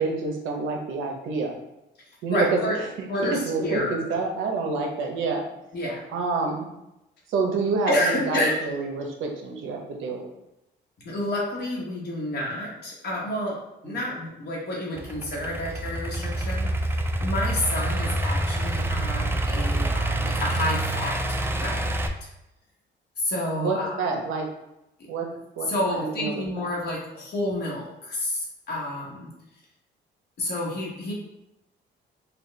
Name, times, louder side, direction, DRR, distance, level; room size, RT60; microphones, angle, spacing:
voice 1, 0.0-1.6 2.2-2.6 3.0-5.4 6.1-6.7 7.3-10.3 13.8-14.0 23.5-24.5 25.1-25.3 25.6-26.4, right 4 dB, 85° right, 1 dB, 0.7 m, -28 dB
voice 2, 2.0-2.8 3.1-4.0 5.7-6.0 7.9-8.6 11.0-21.2 21.6-22.0 23.2-24.1 25.7-29.3 30.4-31.1, left 1 dB, 55° left, -4 dB, 1.1 m, -29 dB
Idling / Accelerating revving vroom, 15.0-22.1, right 1 dB, 10° right, 0.3 m, -27 dB
4.2 x 2.3 x 3.2 m, 0.90 s
cardioid pair, 90°, 20 cm